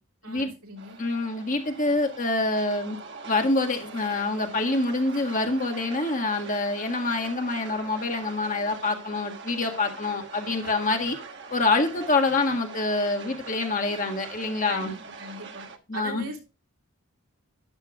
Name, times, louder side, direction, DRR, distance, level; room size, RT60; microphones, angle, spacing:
voice 1, 0.2-1.0 14.7-15.7 15.9-16.5, right 2 dB, 85° right, 1 dB, 3.3 m, -40 dB
sound 1, 0.8-15.8, right 4 dB, 55° right, 1.3 m, -43 dB
voice 2, 1.0-3.0 3.3-11.2 11.5-14.9 15.9-16.3, left 2 dB, 40° left, 3 dB, 1.7 m, -26 dB
12.5 x 9.8 x 2.4 m, 0.28 s
head